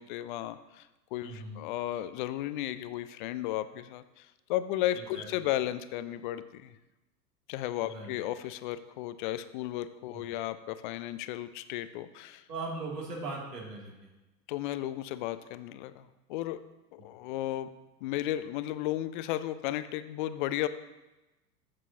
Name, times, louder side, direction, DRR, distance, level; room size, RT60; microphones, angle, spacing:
voice 1, 0.0-6.7 7.5-12.4 14.5-16.6 16.9-17.7 18.0-20.7, left 14 dB, 35° left, 13 dB, 0.4 m, -34 dB
voice 2, 1.2-1.6 4.9-5.3 7.8-8.1 10.1-10.2 12.5-13.9, right 3 dB, 70° right, -2 dB, 2.7 m, -39 dB
13.5 x 6.1 x 2.8 m, 1.1 s
figure-of-eight pair, 90°, 50 cm